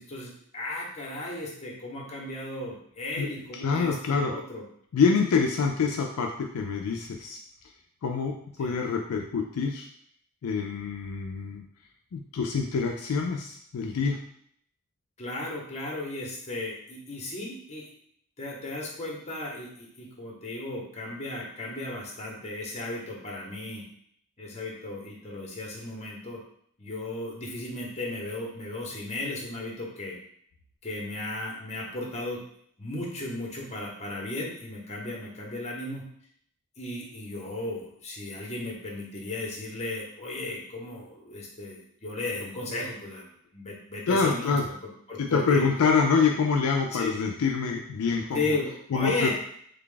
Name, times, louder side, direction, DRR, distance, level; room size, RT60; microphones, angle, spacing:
voice 1, 0.0-4.6 8.6-8.7 15.2-17.9 18.4-23.8 24.4-26.4 26.8-30.1 30.8-32.4 32.8-36.0 36.8-43.3 43.5-44.6 45.1-45.6 46.9-47.2 48.3-49.3, left 2 dB, 30° left, -2 dB, 0.8 m, -35 dB
voice 2, 3.5-4.3 4.9-7.4 8.0-9.9 10.4-11.6 12.1-14.2 44.1-44.7 45.2-48.6 48.9-49.3, left 5 dB, 70° left, 2 dB, 0.4 m, -26 dB
3.4 x 2.3 x 3.7 m, 0.65 s
head